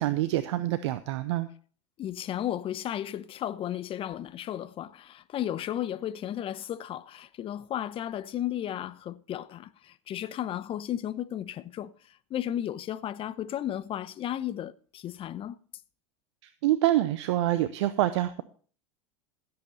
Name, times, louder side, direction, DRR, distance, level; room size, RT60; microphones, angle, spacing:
voice 1, 0.0-1.5 16.6-18.4, right 14 dB, 65° right, 0.8 m, -26 dB
voice 2, 2.0-11.9 12.3-15.6, left 11 dB, 35° left, 0.8 m, -34 dB
16.0 x 7.9 x 4.2 m
hypercardioid pair, 90°, 16 cm